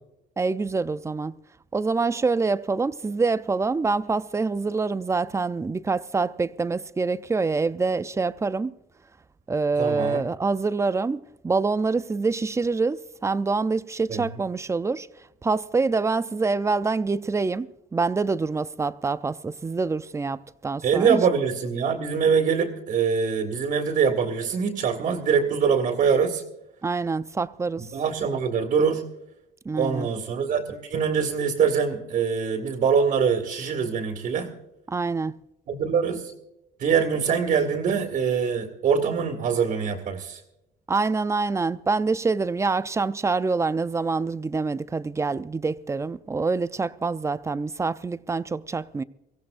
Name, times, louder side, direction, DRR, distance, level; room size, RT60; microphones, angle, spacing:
voice 1, 0.4-1.3 1.7-8.7 9.5-15.1 15.4-21.2 26.8-27.9 29.7-30.1 34.9-35.3 40.9-49.0, right 4 dB, 15° right, 0.5 m, -26 dB
voice 2, 9.8-10.2 14.1-14.2 20.8-26.4 27.8-29.1 29.7-34.5 35.7-36.3 36.8-40.4, right 6 dB, 55° right, 2.2 m, -24 dB
23.5 x 16.0 x 2.6 m
cardioid pair, 110°, 17 cm